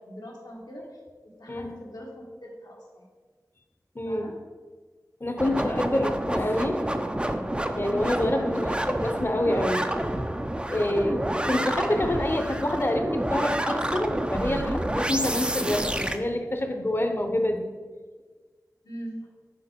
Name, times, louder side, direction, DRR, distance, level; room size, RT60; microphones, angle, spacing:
voice 1, 0.0-3.0 4.1-4.4 5.5-6.2 8.1-8.6 18.8-19.3, equal, 85° left, -2 dB, 1.5 m, -41 dB
voice 2, 3.9-4.3 5.2-6.8 7.8-8.7 9.0-9.8 10.7-17.8, left 1 dB, 35° left, 6 dB, 0.7 m, -27 dB
sound 1, 5.4-16.2, right 1 dB, 15° right, 0.4 m, -29 dB
6.5 x 4.6 x 4.4 m, 1.4 s
wide cardioid pair, 65°, 7 cm